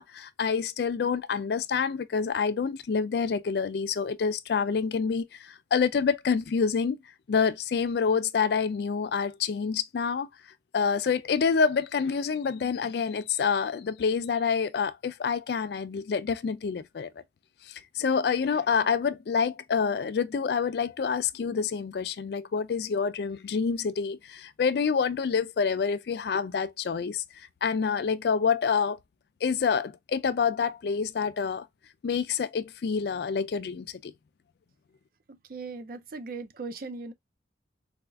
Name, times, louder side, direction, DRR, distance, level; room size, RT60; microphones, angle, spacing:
voice 1, 0.0-7.0 7.3-10.3 10.7-17.1 17.6-29.0 29.4-31.7 32.0-34.1, left 6 dB, 60° left, 0.3 m, -27 dB
voice 2, 35.3-37.1, right 3 dB, 50° right, 0.4 m, -39 dB
4.2 x 2.3 x 2.2 m
head